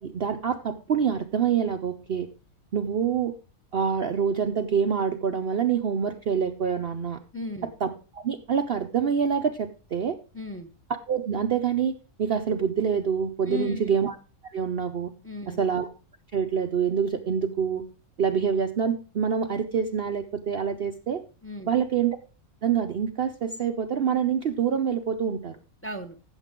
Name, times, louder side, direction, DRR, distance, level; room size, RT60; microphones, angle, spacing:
voice 1, 0.0-2.3 2.7-3.3 3.7-7.2 7.8-7.9 8.1-10.2 11.1-14.1 14.4-15.1 15.6-15.9 16.3-17.8 18.2-21.2 21.7-22.2 22.6-25.6, right 7 dB, 55° right, 7 dB, 0.7 m, -26 dB
voice 2, 7.3-7.7 10.3-10.7 13.5-13.9 15.2-15.6 21.4-21.7 25.8-26.2, left 2 dB, 10° left, 9 dB, 0.8 m, -35 dB
14.0 x 7.3 x 3.7 m, 0.35 s
omnidirectional pair, 1.5 m